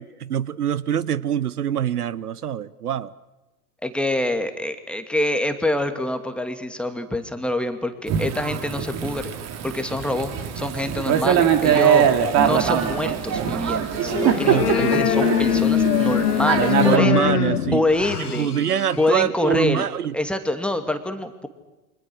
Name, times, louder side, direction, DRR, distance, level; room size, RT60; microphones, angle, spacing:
voice 1, 0.0-3.1 14.5-15.1 16.8-17.8 18.3-20.1, right 9 dB, 80° right, 21 dB, 0.9 m, -24 dB
voice 2, 3.8-9.3 9.6-12.0 12.4-17.2 17.7-18.5 19.0-19.9 20.1-21.5, left 1 dB, ahead, 7 dB, 2.5 m, -25 dB
Thunder / Rain, 8.1-17.0, right 8 dB, 35° right, 2.8 m, -22 dB
sound 1, 14.0-19.2, left 9 dB, 75° left, 1.3 m, -22 dB
29.0 x 25.0 x 6.4 m, 1.1 s
figure-of-eight pair, 85°, 46 cm